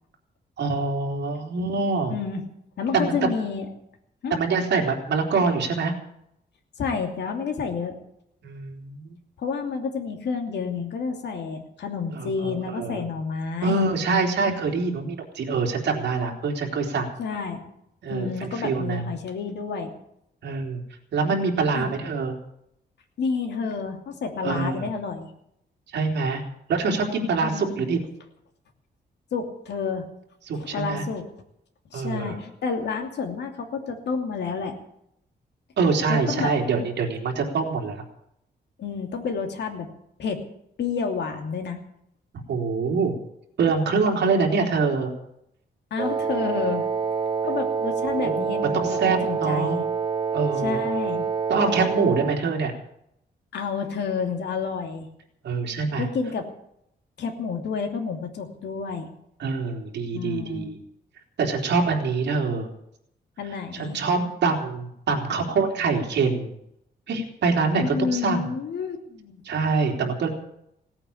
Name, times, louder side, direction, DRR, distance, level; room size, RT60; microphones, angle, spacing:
voice 1, 0.6-2.1 2.9-3.3 4.3-5.9 8.4-9.1 12.1-13.0 13.6-17.1 18.0-19.1 20.4-20.8 21.1-22.4 24.4-24.9 25.9-26.4 26.7-28.0 30.5-31.0 31.9-32.4 35.8-38.0 42.5-43.1 43.6-45.1 48.2-48.5 48.7-49.8 50.3-50.8 51.5-52.7 55.4-56.1 59.4-60.8 61.4-62.7 63.7-66.5 67.1-68.5 69.4-70.3, right 4 dB, 75° right, 0 dB, 3.5 m, -25 dB
voice 2, 2.1-2.4 2.8-3.7 4.2-4.3 6.8-8.0 9.4-13.9 17.2-17.6 18.1-19.9 21.7-22.0 23.2-25.3 27.4-27.8 29.3-30.1 30.6-31.2 31.9-34.7 36.1-36.5 38.8-39.9 40.2-40.4 40.8-41.8 45.9-46.9 47.4-49.8 50.6-51.3 53.5-55.1 56.0-56.5 57.2-59.1 60.1-60.7 63.4-64.0 67.8-69.4, left 5 dB, 75° left, 4 dB, 2.8 m, -30 dB
Wind instrument woodwind instrument, 46.0-52.4, right 5 dB, 25° right, 1.2 m, -27 dB
17.5 x 9.0 x 8.6 m, 0.76 s
wide cardioid pair, 160°, 18 cm